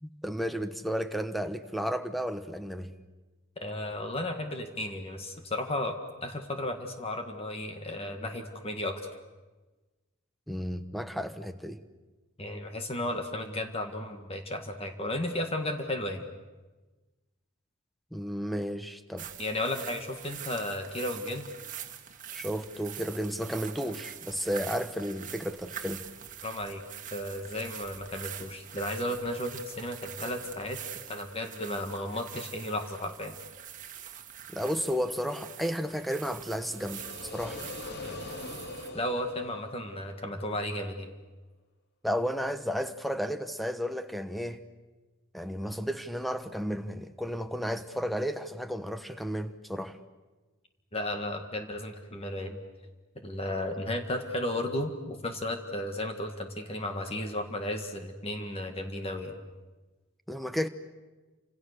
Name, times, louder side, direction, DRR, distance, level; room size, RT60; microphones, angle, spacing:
voice 1, 0.0-2.9 10.5-11.8 18.1-19.3 22.3-26.0 34.5-37.0 37.3-37.6 42.0-44.6 45.3-50.0 60.3-60.7, equal, ahead, 1.1 m, -33 dB
voice 2, 3.6-6.0 6.2-9.0 12.4-16.3 19.4-21.5 26.4-26.8 27.1-30.8 31.1-33.3 38.0-38.2 38.9-41.1 50.9-52.6 53.2-59.4, left 1 dB, 25° left, 1.8 m, -34 dB
sound 1, 19.2-38.9, right 9 dB, 35° right, 1.9 m, -44 dB
sound 2, 36.4-40.3, left 2 dB, 50° left, 2.9 m, -42 dB
29.5 x 26.5 x 6.7 m
head